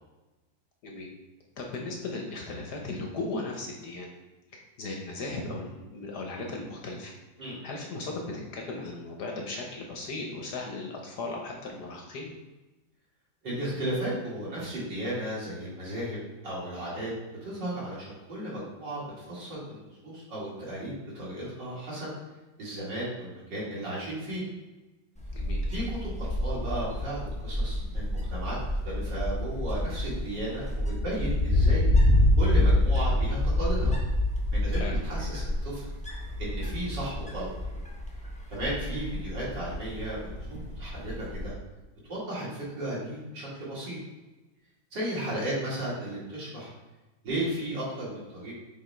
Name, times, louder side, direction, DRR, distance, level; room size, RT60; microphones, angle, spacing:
voice 1, 1.6-4.1 4.5-7.1 7.6-12.3 25.3-25.7 34.7-35.0, left 2 dB, 60° left, 0 dB, 1.3 m, -37 dB
voice 2, 13.4-17.1 17.4-22.1 22.6-24.4 25.7-28.6 28.8-32.1 32.4-34.0 34.5-35.9 36.4-37.5 38.5-41.5 42.1-44.0 44.9-46.7 47.2-48.5, right 1 dB, 60° right, -8 dB, 3.1 m, -34 dB
Wind, 25.2-41.5, left 1 dB, 10° left, 0.4 m, -27 dB
7.4 x 3.6 x 4.4 m, 1.1 s
omnidirectional pair, 2.1 m